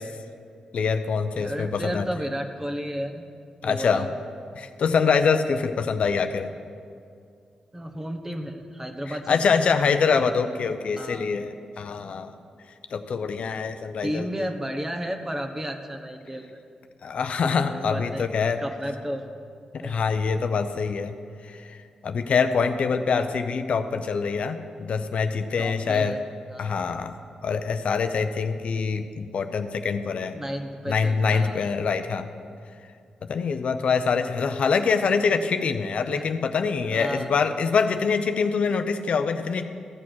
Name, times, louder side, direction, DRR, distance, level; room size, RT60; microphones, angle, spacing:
voice 1, 0.7-2.1 3.6-4.1 4.6-6.5 9.3-12.3 12.9-14.5 17.0-18.6 19.8-21.1 21.4-21.8 22.0-26.1 26.6-27.2 27.4-30.4 30.9-32.3 33.3-39.6, left 5 dB, 65° left, 8 dB, 0.5 m, -24 dB
voice 2, 1.3-3.3 3.6-4.1 7.7-9.5 10.9-11.3 14.0-16.6 17.7-18.3 18.6-19.2 19.8-20.0 25.6-26.2 26.5-26.7 30.3-31.7 36.1-36.2 36.9-37.3, equal, 20° right, 5 dB, 1.1 m, -32 dB
14.5 x 6.1 x 6.2 m, 2.4 s
cardioid pair, 65°, 2 cm